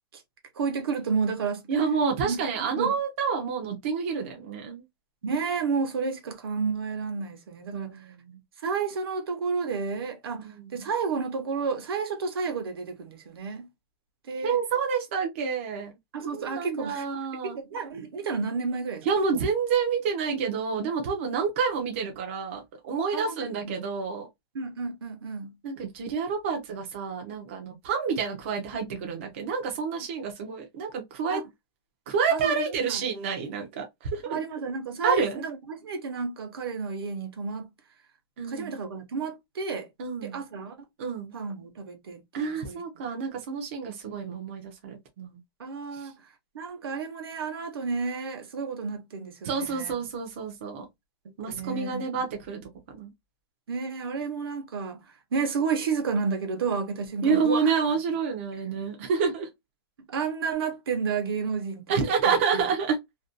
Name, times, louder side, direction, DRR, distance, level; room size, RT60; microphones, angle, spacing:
voice 1, 0.6-1.6 2.2-2.9 5.2-7.9 8.6-10.5 10.7-13.7 14.3-14.6 16.1-17.0 17.5-19.0 23.1-23.7 24.5-25.5 31.3-31.4 32.3-33.0 34.3-37.7 38.5-39.9 40.2-40.7 41.3-42.8 45.6-46.1 46.5-49.9 51.5-52.2 53.7-55.0 55.3-57.7 60.1-62.4, right 5 dB, 65° right, 0.8 m, -31 dB
voice 2, 1.7-4.8 7.7-8.4 10.3-10.9 14.4-15.9 16.2-17.6 19.0-24.3 25.6-31.4 32.1-33.8 34.1-34.4 35.0-35.4 38.4-38.7 40.0-40.4 41.0-41.3 42.3-45.4 46.0-46.1 49.4-50.9 51.4-52.6 52.9-53.1 57.2-59.5 61.9-63.0, right 5 dB, 30° right, 0.4 m, -28 dB
2.5 x 2.1 x 2.4 m
hypercardioid pair, 180°, 13 cm